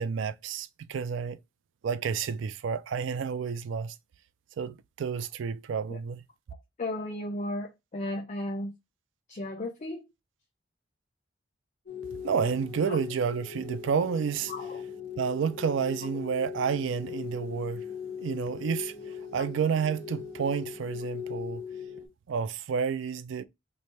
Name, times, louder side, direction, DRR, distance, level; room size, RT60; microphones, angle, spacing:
voice 1, 0.0-1.4 1.8-3.9 4.6-6.2 12.2-14.5 15.1-17.8 18.2-21.6 22.3-23.4, right 6 dB, 70° right, 0.3 m, -30 dB
voice 2, 6.8-8.7 9.3-10.0 12.9-13.0 14.5-14.8, left 1 dB, 40° left, 0.5 m, -34 dB
sound 1, 11.9-22.1, left 7 dB, 55° left, 1.3 m, -39 dB
3.1 x 2.1 x 4.2 m
head